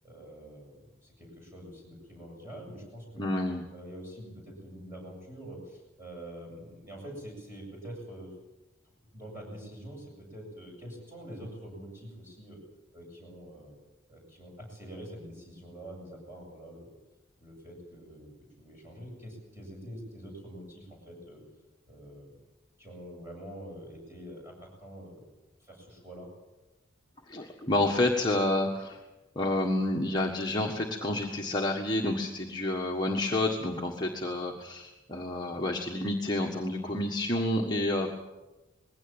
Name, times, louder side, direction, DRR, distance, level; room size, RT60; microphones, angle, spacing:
voice 1, 0.0-3.3 3.7-8.3 9.1-12.6 12.9-13.7 14.1-16.9 17.4-18.3 18.6-21.4 21.9-22.4 22.8-25.2 25.6-26.3, equal, 15° right, 0 dB, 7.8 m, -45 dB
voice 2, 3.2-3.6 27.3-29.0 29.3-38.1, left 1 dB, 20° left, -1 dB, 1.6 m, -29 dB
21.0 x 17.0 x 9.0 m, 1.1 s
head